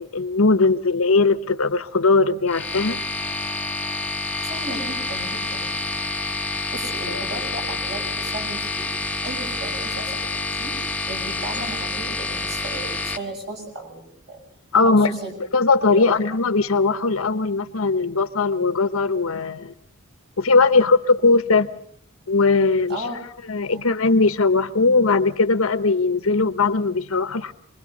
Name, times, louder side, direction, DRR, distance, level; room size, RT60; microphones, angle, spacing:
voice 1, 0.0-3.0 14.7-15.2 15.5-19.7 20.4-21.7 22.3-23.0 23.5-27.5, left 3 dB, 75° left, 12 dB, 1.0 m, -19 dB
sound 1, 2.5-13.2, left 3 dB, 5° left, 0.9 m, -28 dB
voice 2, 4.4-6.2 6.7-8.9 9.2-10.3 10.6-10.7 11.1-14.4 14.8-15.3 15.9-16.3 20.8-20.9 22.9-23.1 23.7-23.8, right 2 dB, 50° right, 2 dB, 6.3 m, -35 dB
25.5 x 21.0 x 5.4 m, 0.63 s
head